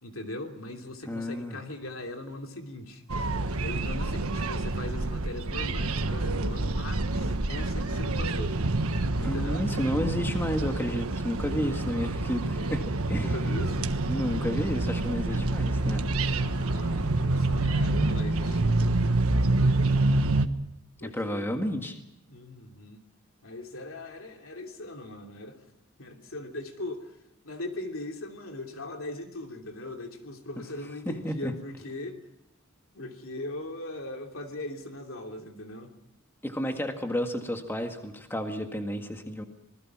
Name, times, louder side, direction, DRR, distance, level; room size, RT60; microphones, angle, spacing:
voice 1, 0.0-3.0 3.6-8.6 9.2-9.7 13.0-14.0 16.2-18.8 19.7-20.1 21.0-21.6 22.3-23.0 23.4-25.6 26.0-27.2 27.4-32.2 32.9-35.9 36.7-36.8, left 2 dB, 70° left, 4 dB, 3.0 m, -40 dB
voice 2, 1.1-1.6 9.2-12.8 13.1-13.3 14.1-16.0 21.0-22.0 31.1-31.5 36.4-39.4, equal, 10° left, 4 dB, 1.9 m, -31 dB
sound 1, 3.1-20.5, right 2 dB, 85° right, 1.4 m, -27 dB
26.5 x 20.5 x 6.1 m, 0.85 s
head